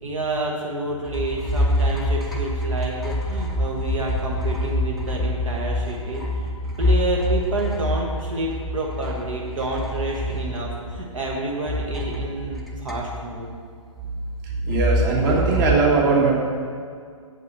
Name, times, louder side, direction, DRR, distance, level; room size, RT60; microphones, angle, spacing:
voice 1, 0.0-13.5, right 2 dB, 65° right, -2 dB, 1.3 m, -29 dB
sound 1, 1.0-11.3 11.6-13.5 14.7-15.7, left 1 dB, ahead, 0.6 m, -26 dB
voice 2, 14.7-16.3, right 4 dB, 35° right, -1 dB, 1.6 m, -19 dB
7.7 x 5.4 x 6.6 m, 2.1 s
figure-of-eight pair, 130°, 18 cm